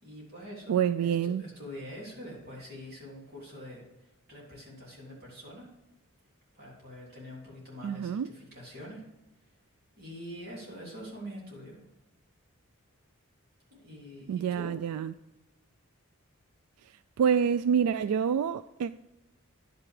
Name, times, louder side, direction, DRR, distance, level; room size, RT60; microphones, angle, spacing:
voice 1, 0.0-5.7 6.5-9.0 10.0-11.8 13.7-14.7, equal, 45° right, 3.5 m, -45 dB
voice 2, 0.7-1.4 7.8-8.3 14.3-15.1 17.2-19.0, right 7 dB, 85° right, 0.3 m, -27 dB
10.5 x 6.0 x 4.8 m
head